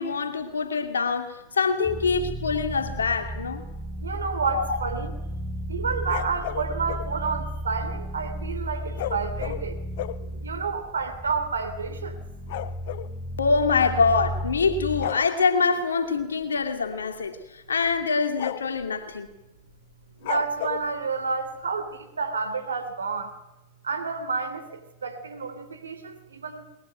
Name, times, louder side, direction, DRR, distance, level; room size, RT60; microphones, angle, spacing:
voice 1, 0.0-3.6 4.5-4.8 13.4-19.3, left 4 dB, 85° left, 2.5 m, -25 dB
sound 1, 1.8-15.1, equal, ahead, 7.8 m, -34 dB
voice 2, 4.0-5.1 5.7-9.7 10.4-12.2 20.2-21.9 22.2-23.3 23.8-24.6 25.0-26.6, right 5 dB, 85° right, 3.0 m, -30 dB
sound 2, 5.7-7.1 9.0-10.3 11.0-11.1 11.3-11.5 11.8-13.1 14.2-14.6 14.9-15.3 16.6-16.9 17.2-17.3 17.8-18.0 18.4-18.9 20.2-20.9, left 13 dB, 60° left, 1.2 m, -34 dB
21.5 x 21.5 x 9.2 m
hypercardioid pair, 95°, 0 cm